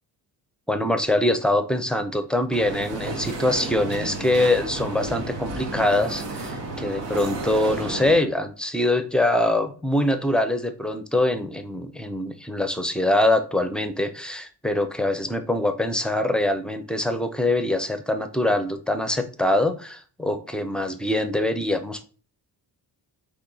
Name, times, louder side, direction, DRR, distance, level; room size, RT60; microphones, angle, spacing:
voice 1, 0.7-22.0, left 1 dB, ahead, 8 dB, 0.5 m, -24 dB
sound 1, 2.5-8.1, right 3 dB, 80° right, 1.2 m, -32 dB
4.3 x 3.0 x 3.8 m, 0.39 s
cardioid pair, 105°, 43 cm